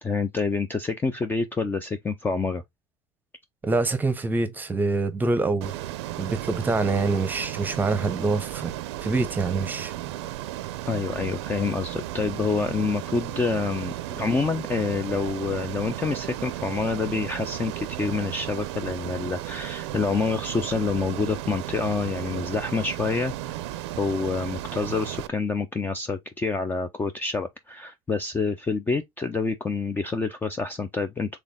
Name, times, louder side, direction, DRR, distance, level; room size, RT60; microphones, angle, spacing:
voice 1, 0.0-2.6 10.9-23.6 24.0-31.4, left 4 dB, 15° left, 0.4 m, -27 dB
voice 2, 3.6-5.7 6.2-8.7 9.0-9.9, right 3 dB, 15° right, 0.8 m, -25 dB
Ocean, 5.6-25.3, right 14 dB, 85° right, 0.6 m, -34 dB
4.2 x 3.5 x 3.6 m
supercardioid pair, 130°, 14 cm